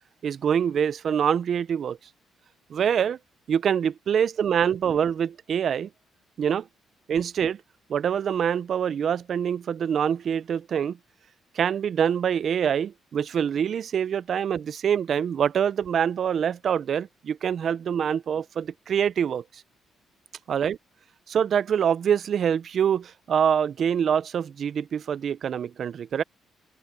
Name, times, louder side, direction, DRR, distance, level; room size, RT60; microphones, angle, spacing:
voice 1, 0.2-2.0 2.7-3.2 3.5-5.9 6.4-6.7 7.1-7.6 7.9-11.0 11.5-19.4 20.5-20.8 21.3-26.2, right 8 dB, 60° right, 0.6 m, -25 dB
open air
cardioid pair, 90°, 0 cm